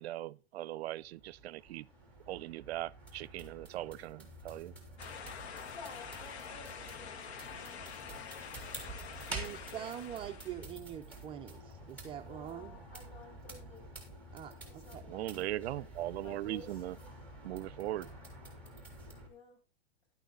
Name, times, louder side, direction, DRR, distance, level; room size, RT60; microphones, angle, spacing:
voice 1, 0.0-1.9 2.3-4.7 15.1-17.0 17.4-18.1, right 14 dB, 75° right, 0.5 m, -39 dB
sound 1, 0.8-19.3, right 2 dB, 5° left, 3.3 m, -49 dB
sound 2, 5.0-10.7, left 7 dB, 80° left, 1.5 m, -46 dB
voice 2, 5.4-8.4 9.3-9.8 12.2-13.9 14.6-15.3 16.2-16.8 19.2-19.6, left 4 dB, 60° left, 6.3 m, -54 dB
voice 3, 9.3-12.8 14.3-15.1, right 10 dB, 15° right, 0.5 m, -44 dB
11.5 x 9.0 x 3.8 m
supercardioid pair, 155°, 32 cm